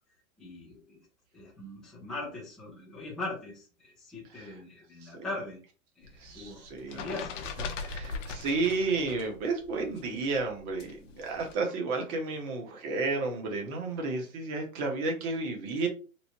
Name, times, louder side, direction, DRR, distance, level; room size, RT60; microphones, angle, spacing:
voice 1, 0.4-1.0 1.3-5.6 6.0-7.3, left 2 dB, ahead, -7 dB, 0.3 m, -40 dB
sound 1, 6.0-9.4 9.6-11.5, left 4 dB, 60° left, 0.6 m, -40 dB
voice 2, 6.2-7.2 7.8-15.9, right 3 dB, 35° right, 2 dB, 1.0 m, -32 dB
3.0 x 2.1 x 2.8 m, 0.35 s
hypercardioid pair, 135°, 42 cm